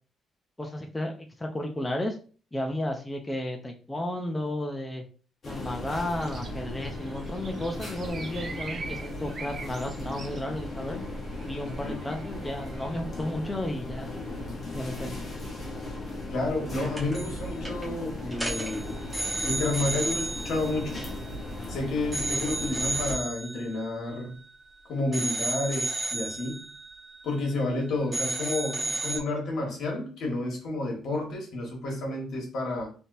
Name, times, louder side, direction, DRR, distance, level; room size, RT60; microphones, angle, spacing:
voice 1, 0.6-2.2 2.5-5.0 5.5-11.0 11.4-14.1 14.7-15.2, left 1 dB, 15° left, 3 dB, 0.6 m, -33 dB
sound 1, 5.4-23.1, left 2 dB, 40° left, 1.2 m, -37 dB
sound 2, 6.1-13.0, right 4 dB, 45° right, 0.7 m, -44 dB
voice 2, 16.3-18.9 19.4-21.0 21.7-24.3 24.9-26.6 27.2-32.9, left 2 dB, 70° left, -1 dB, 1.5 m, -30 dB
sound 3, 17.0-17.4 17.6-17.9 18.3-21.7 22.1-24.7 25.1-27.8 28.1-29.2, right 2 dB, 5° right, 1.2 m, -33 dB
3.4 x 2.8 x 2.7 m, 0.38 s
cardioid pair, 90°, 0 cm